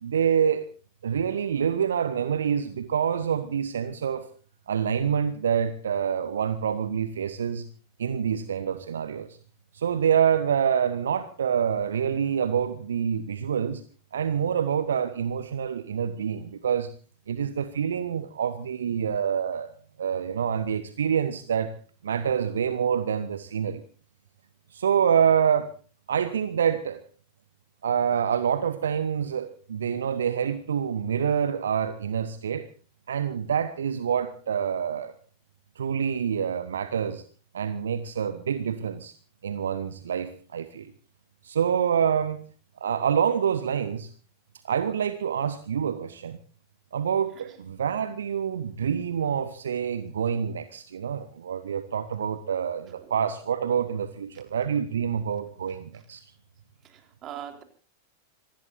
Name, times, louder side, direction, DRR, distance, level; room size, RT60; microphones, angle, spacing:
voice 1, 0.0-0.7 1.0-4.3 4.7-7.7 8.0-9.3 9.7-13.8 14.1-16.9 17.3-19.7 20.0-21.7 22.0-23.8 24.7-25.7 26.1-27.0 27.8-32.7 33.1-35.1 35.8-37.2 37.5-39.1 39.4-40.9 41.4-42.4 42.8-44.1 44.6-46.4 46.9-56.2, right 8 dB, 65° right, 12 dB, 1.1 m, -26 dB
voice 2, 56.8-57.6, right 10 dB, 30° right, 5 dB, 4.1 m, -42 dB
26.0 x 19.5 x 2.6 m, 0.38 s
figure-of-eight pair, 90°, 0 cm